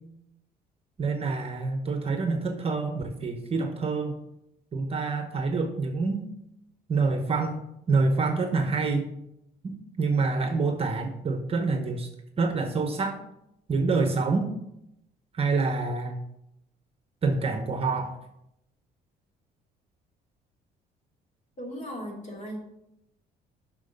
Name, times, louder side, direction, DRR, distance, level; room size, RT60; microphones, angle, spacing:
voice 1, 1.0-4.1 4.7-6.3 6.9-7.6 7.9-9.1 9.6-12.1 12.4-13.2 13.7-14.5 15.4-16.2 17.2-18.1, right 4 dB, 35° right, 6 dB, 0.9 m, -27 dB
voice 2, 21.6-22.6, equal, 45° left, 0 dB, 2.6 m, -37 dB
6.2 x 6.0 x 5.2 m, 0.82 s
cardioid pair, 110°, 17 cm